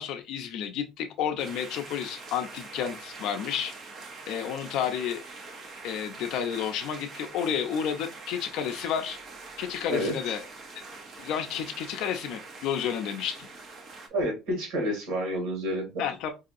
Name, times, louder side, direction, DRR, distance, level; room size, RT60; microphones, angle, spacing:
voice 1, 0.0-3.7 4.3-5.2 5.8-9.2 9.6-10.4 11.2-13.5 16.0-16.3, left 8 dB, 60° left, 5 dB, 0.5 m, -31 dB
sound 1, 1.4-14.1, right 3 dB, 30° right, 0.7 m, -44 dB
voice 2, 14.1-16.0, equal, 80° right, 1 dB, 2.1 m, -29 dB
4.7 x 2.7 x 2.5 m, 0.25 s
cardioid pair, 180°, 0 cm